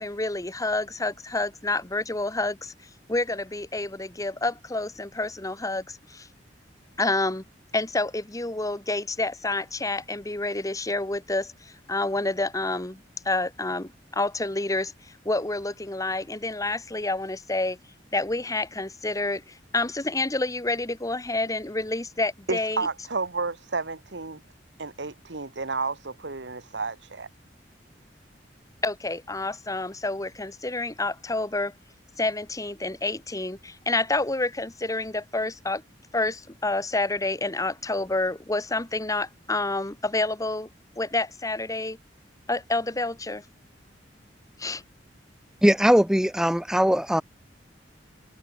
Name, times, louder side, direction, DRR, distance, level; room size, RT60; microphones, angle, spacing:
voice 1, 0.0-2.7 3.1-6.3 7.0-7.4 7.7-13.0 13.2-14.9 15.2-17.8 18.1-22.9 28.8-31.7 32.2-35.8 36.1-40.7 41.0-42.0 42.5-43.4 44.6-44.8, left 2 dB, 20° left, 1.4 m, -28 dB
voice 2, 22.5-24.4 24.8-27.3, right 4 dB, 75° right, 1.4 m, -31 dB
voice 3, 45.6-47.2, equal, 5° right, 0.8 m, -20 dB
head